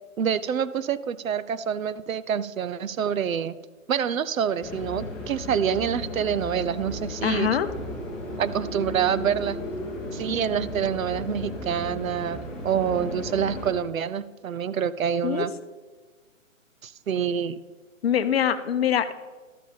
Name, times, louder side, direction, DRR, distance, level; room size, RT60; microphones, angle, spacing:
voice 1, 0.2-3.5 3.9-7.5 8.4-9.6 10.1-12.4 12.6-15.5 16.8-17.6, right 8 dB, 85° right, 16 dB, 0.7 m, -27 dB
sound 1, 4.6-13.7, left 1 dB, ahead, 1.1 m, -35 dB
voice 2, 7.2-7.7 15.2-15.5 18.0-19.1, left 9 dB, 50° left, 11 dB, 0.7 m, -23 dB
12.5 x 5.4 x 5.1 m, 1.4 s
hypercardioid pair, 155°, 40 cm